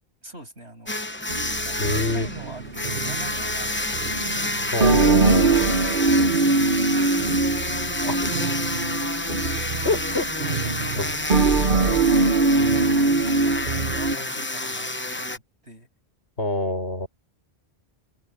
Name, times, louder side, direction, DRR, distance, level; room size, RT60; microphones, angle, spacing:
voice 1, 0.2-4.0 5.8-8.1 10.0-10.2 10.5-11.4 12.8-15.9, right 1 dB, 90° right, 8.1 m, -43 dB
sound 1, 0.9-15.4, left 2 dB, 10° left, 0.8 m, -29 dB
sound 2, 1.3-14.2, right 3 dB, 50° right, 1.3 m, -23 dB
voice 2, 1.8-2.3 4.7-5.6 8.1-8.2 9.8-10.6 11.0-11.2 16.4-17.1, left 2 dB, 80° left, 6.3 m, -26 dB
omnidirectional pair, 1.1 m